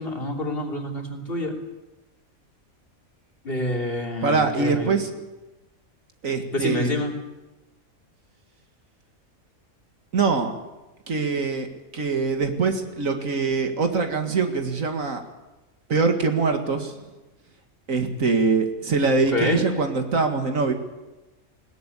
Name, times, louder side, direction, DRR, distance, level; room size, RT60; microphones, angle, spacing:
voice 1, 0.0-1.6 3.4-4.9 6.5-7.1 19.3-19.6, left 1 dB, 45° left, 1 dB, 3.3 m, -27 dB
voice 2, 4.2-5.1 6.2-6.9 10.1-10.5 11.1-11.7 11.9-15.2 15.9-16.9 17.9-20.7, right 4 dB, 75° right, 6 dB, 2.3 m, -23 dB
20.5 x 17.0 x 8.4 m, 1.1 s
omnidirectional pair, 1.4 m